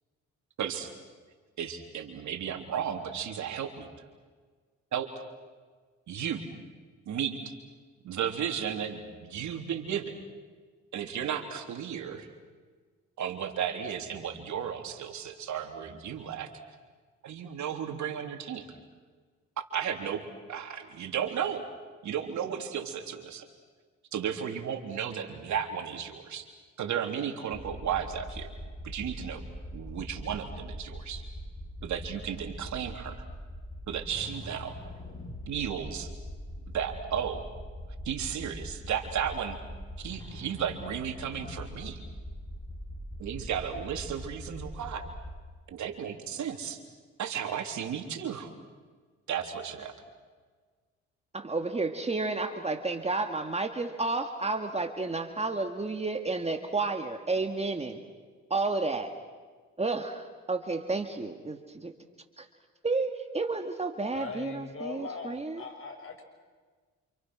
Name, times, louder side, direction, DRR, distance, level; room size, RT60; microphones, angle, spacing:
voice 1, 0.6-0.9 1.6-3.9 4.9-5.2 6.1-6.4 7.1-7.4 8.0-10.2 10.9-12.3 13.2-16.5 17.2-18.7 19.7-20.2 20.5-21.7 22.0-23.5 24.1-26.5 26.8-28.5 28.8-29.4 29.7-31.2 31.8-33.3 33.9-34.8 35.5-36.1 36.7-37.4 38.1-39.6 40.0-42.0 43.2-45.1 45.7-46.8 47.2-48.5 49.3-49.9, right 8 dB, 70° right, 4 dB, 3.6 m, -34 dB
sound 1, 27.5-45.4, equal, 15° left, 6.8 m, -42 dB
voice 2, 51.3-58.0 58.5-59.1 59.8-61.9 62.4-62.5 62.8-65.6, right 3 dB, 20° right, 5 dB, 2.1 m, -31 dB
voice 3, 64.1-66.2, left 5 dB, 45° left, 4 dB, 6.2 m, -40 dB
29.0 x 28.0 x 6.3 m, 1.5 s
cardioid pair, 90°, 30 cm